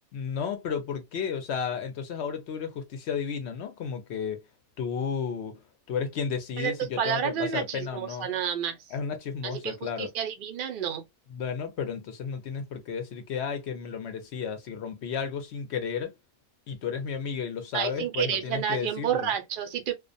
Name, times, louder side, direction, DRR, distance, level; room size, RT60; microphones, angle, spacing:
voice 1, 0.1-4.4 4.8-5.6 5.9-8.3 8.9-10.1 11.3-16.1 16.7-19.3, left 6 dB, 65° left, 0.7 m, -33 dB
voice 2, 6.6-8.8 9.4-11.0 17.7-19.9, right 9 dB, 55° right, 0.6 m, -30 dB
2.4 x 2.1 x 2.5 m
omnidirectional pair, 1.4 m